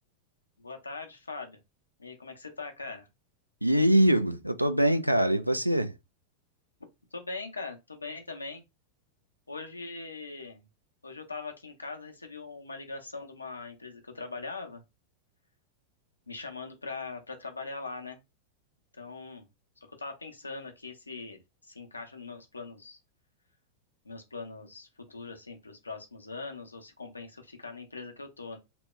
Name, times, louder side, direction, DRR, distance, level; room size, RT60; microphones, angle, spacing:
voice 1, 0.6-1.6 2.0-3.1 7.1-8.6 9.5-10.6 11.0-14.8 16.3-18.2 19.0-19.5 20.0-23.0 24.0-28.6, left 3 dB, 80° left, 0.7 m, -41 dB
voice 2, 3.6-5.9, right 1 dB, 90° right, 0.3 m, -23 dB
2.9 x 2.1 x 3.0 m
figure-of-eight pair, 90°, 0 cm